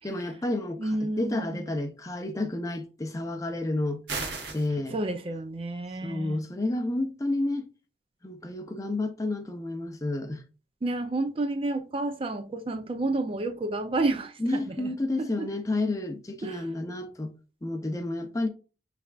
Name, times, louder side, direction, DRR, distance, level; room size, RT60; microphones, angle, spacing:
voice 1, 0.0-4.0 4.5-4.9 6.0-7.7 8.2-10.4 14.4-17.3 17.6-18.5, left 2 dB, 20° left, 0.6 m, -30 dB
voice 2, 0.8-1.7 4.9-6.4 10.8-15.5 16.4-16.7, right 2 dB, 30° right, 0.4 m, -30 dB
sound 1, 4.1-4.7, right 4 dB, 65° right, 1.1 m, -33 dB
6.1 x 3.3 x 2.4 m
head